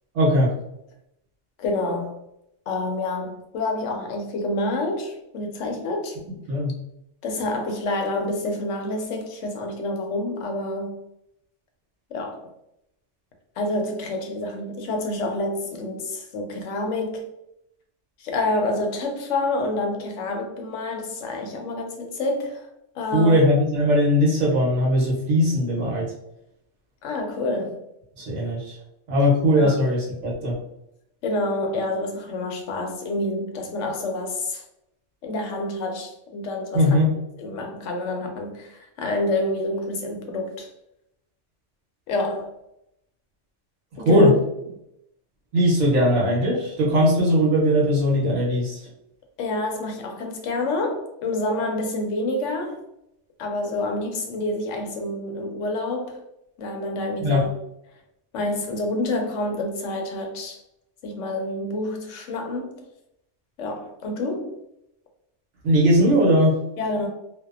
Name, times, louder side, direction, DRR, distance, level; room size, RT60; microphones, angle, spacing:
voice 1, 0.1-0.5 6.5-6.7 23.1-26.1 28.2-28.7 29.1-30.5 36.7-37.1 44.0-44.3 45.5-48.8 57.2-57.4 65.6-66.6, equal, 75° right, -5 dB, 1.0 m, -19 dB
voice 2, 1.6-2.1 2.7-6.2 7.2-11.0 12.1-12.4 13.6-17.2 18.2-22.7 23.0-23.4 27.0-27.8 29.6-29.7 31.2-34.6 35.2-37.0 37.4-40.7 42.1-42.5 44.0-44.3 49.4-52.8 53.4-56.2 56.6-57.5 58.3-60.6 61.0-62.8 63.6-64.6 66.8-67.1, left 2 dB, 80° left, 3 dB, 0.9 m, -28 dB
2.6 x 2.1 x 2.3 m, 0.82 s
omnidirectional pair, 1.3 m